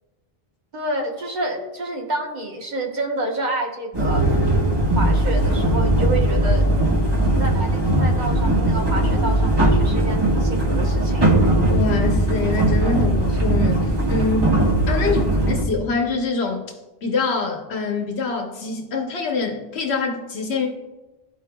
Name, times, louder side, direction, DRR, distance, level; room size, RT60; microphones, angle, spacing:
voice 1, 0.7-4.2 5.0-6.7 7.4-11.3 15.0-15.2, right 1 dB, 45° right, -1 dB, 1.3 m, -28 dB
sound 1, 3.9-15.6, right 1 dB, 25° right, 1.3 m, -19 dB
voice 2, 11.7-14.6 14.9-15.2 15.5-16.6 17.0-20.7, left 4 dB, 85° left, 2 dB, 1.1 m, -25 dB
13.0 x 4.7 x 2.2 m, 1.1 s
omnidirectional pair, 1.1 m